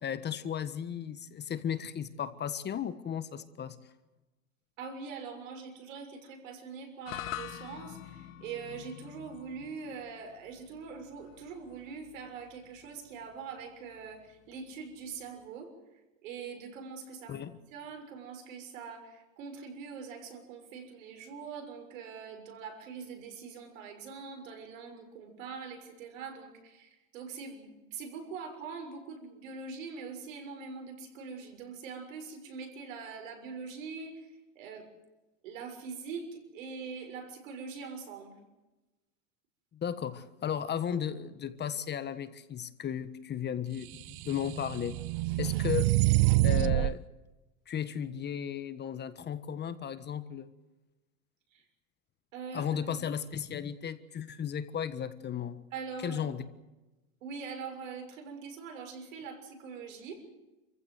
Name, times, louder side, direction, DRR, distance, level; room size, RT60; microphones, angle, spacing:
voice 1, 0.0-3.8 17.3-17.6 39.7-45.0 45.4-45.9 46.4-47.0 47.7-50.5 52.5-55.6 56.0-56.4, left 8 dB, 25° left, 13 dB, 1.4 m, -35 dB
voice 2, 4.8-15.7 16.2-17.4 17.7-34.9 35.4-38.4 51.5-51.7 52.3-52.8 55.7-56.3 57.2-60.2, right 5 dB, 75° right, 5 dB, 6.5 m, -43 dB
sound 1, 7.0-15.5, left 13 dB, 60° left, 1.7 m, -47 dB
sound 2, 44.0-47.0, right 20 dB, 55° right, 0.7 m, -26 dB
28.5 x 15.5 x 8.0 m, 1.1 s
supercardioid pair, 120°, 39 cm